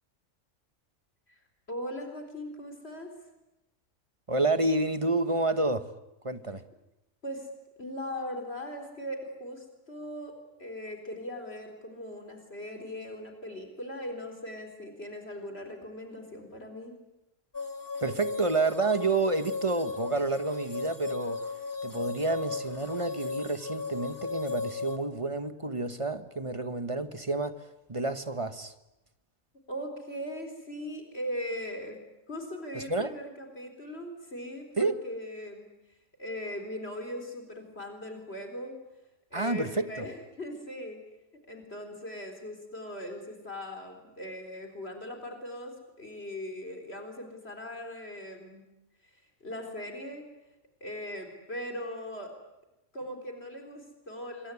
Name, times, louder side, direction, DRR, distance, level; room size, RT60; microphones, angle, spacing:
voice 1, 1.7-3.1 7.2-7.5 7.8-10.3 10.6-16.9 29.7-32.0 32.3-35.6 36.2-38.8 39.3-41.0 41.5-48.6 49.0-50.2 50.8-52.3 52.9-54.5, equal, 45° left, 4 dB, 4.3 m, -39 dB
voice 2, 4.3-5.9 6.2-6.6 18.0-21.4 21.8-28.7 32.7-33.1 34.8-35.0 39.3-40.0, right 2 dB, 25° right, 10 dB, 1.3 m, -29 dB
sound 1, 17.5-25.0, left 4 dB, 15° left, 1.8 m, -36 dB
26.0 x 23.0 x 9.8 m, 0.95 s
omnidirectional pair, 1.4 m